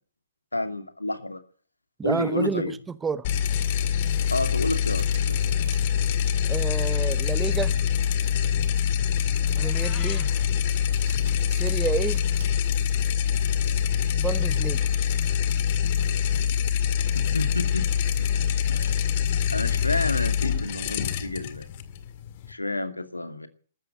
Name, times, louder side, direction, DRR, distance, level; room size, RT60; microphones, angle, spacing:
voice 1, 0.5-1.4 2.0-2.8 4.3-5.5 17.1-17.9 18.2-18.3 18.7-19.0 19.5-21.7 22.5-23.5, left 2 dB, 85° left, 2.5 m, -30 dB
voice 2, 2.0-3.3 6.5-7.7 9.5-10.5 11.5-12.2 14.2-14.8, right 5 dB, 10° right, 0.8 m, -30 dB
sound 1, 3.2-22.5, left 8 dB, 40° left, 2.0 m, -25 dB
Domestic sounds home sounds, 3.8-12.4, right 7 dB, 55° right, 6.1 m, -49 dB
Meow, 9.6-10.4, left 9 dB, 25° left, 2.8 m, -42 dB
14.5 x 13.0 x 7.6 m
figure-of-eight pair, 120°, 0 cm